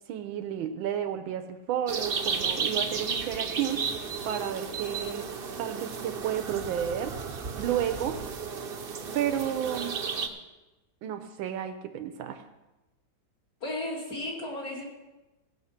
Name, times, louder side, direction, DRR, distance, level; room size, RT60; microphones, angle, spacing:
voice 1, 0.1-5.2 5.6-7.1 7.6-8.2 9.1-9.9 11.0-12.4, right 9 dB, 90° right, 7 dB, 1.5 m, -32 dB
sound 1, 1.9-10.3, right 5 dB, 50° right, 0.6 m, -33 dB
voice 2, 13.6-14.8, left 1 dB, 50° left, -2 dB, 3.2 m, -34 dB
16.0 x 7.3 x 5.8 m, 1.1 s
omnidirectional pair, 2.1 m